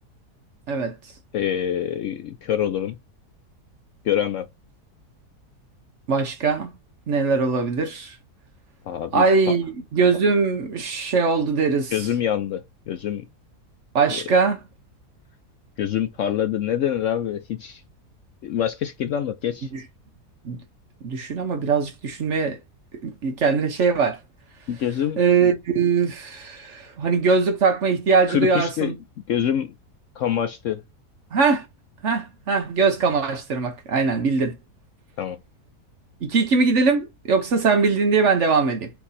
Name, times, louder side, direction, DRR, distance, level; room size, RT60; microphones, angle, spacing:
voice 1, 1.3-2.9 4.0-4.5 8.9-9.6 11.9-13.3 14.1-14.2 15.8-17.8 18.4-19.7 24.7-25.2 28.3-28.9 29.3-29.7 30.2-30.8 35.2-35.4, left 10 dB, 65° left, 0.8 m, -25 dB
voice 2, 6.1-6.7 7.1-8.2 9.1-12.1 13.9-14.6 19.7-19.8 20.4-20.6 21.0-22.6 23.0-24.2 25.2-29.0 31.3-31.7 32.0-34.6 36.2-38.9, right 4 dB, 55° right, 1.0 m, -21 dB
4.5 x 2.7 x 4.0 m
omnidirectional pair, 1.7 m